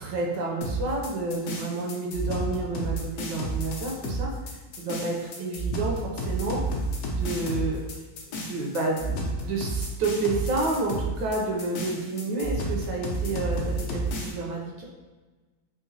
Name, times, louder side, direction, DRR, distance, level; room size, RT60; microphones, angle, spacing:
voice 1, 0.0-4.3 4.8-6.6 7.1-7.8 8.3-14.8, right 3 dB, 75° right, -1 dB, 1.2 m, -30 dB
sound 1, 0.6-14.3, right 2 dB, 70° left, 0.9 m, -31 dB
3.8 x 2.5 x 2.7 m, 1.3 s
omnidirectional pair, 2.1 m